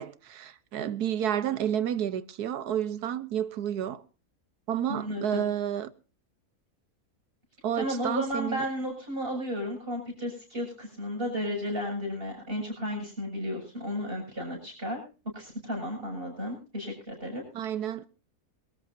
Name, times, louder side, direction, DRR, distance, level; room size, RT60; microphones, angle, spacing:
voice 1, 0.0-4.0 4.7-5.9 7.6-8.6 17.5-18.1, right 9 dB, 85° right, 1.5 m, -30 dB
voice 2, 4.9-5.4 7.7-15.0 15.3-17.4, equal, 35° right, 7.7 m, -33 dB
22.5 x 13.5 x 2.7 m
omnidirectional pair, 1.6 m